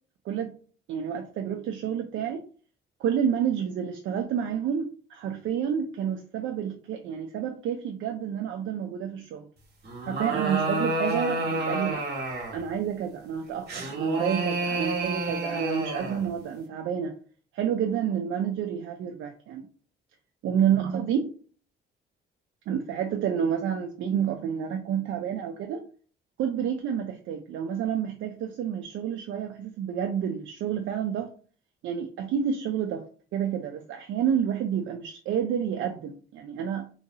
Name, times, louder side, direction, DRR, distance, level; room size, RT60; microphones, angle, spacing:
voice 1, 0.3-0.6 0.9-2.4 3.0-9.5 10.1-12.0 12.5-17.1 17.5-19.7 20.4-21.3 22.7-25.8 26.4-31.3 31.8-33.0 33.3-36.9, right 8 dB, 75° right, 0.4 m, -29 dB
sound 1, 9.8-12.7 13.7-16.3, right 2 dB, 55° right, 1.3 m, -29 dB
2.8 x 2.5 x 2.7 m
cardioid pair, 90°, 20 cm